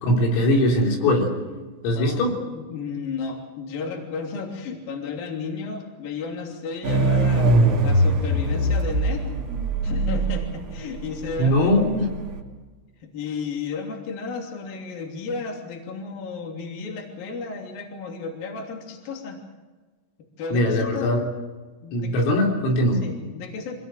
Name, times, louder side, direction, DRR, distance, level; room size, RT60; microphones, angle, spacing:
voice 1, 0.0-1.3 1.8-2.4 11.4-12.1 20.5-21.3 21.9-23.1, left 1 dB, 80° left, 0 dB, 6.2 m, -21 dB
voice 2, 1.9-2.3 2.5-9.3 9.8-11.8 13.0-19.4 20.4-21.1 21.8-22.3 23.0-23.8, left 4 dB, 50° left, 2 dB, 4.4 m, -33 dB
sound 1, 6.8-12.4, right 2 dB, 40° right, 3.6 m, -22 dB
25.5 x 19.0 x 7.7 m, 1.3 s
omnidirectional pair, 5.8 m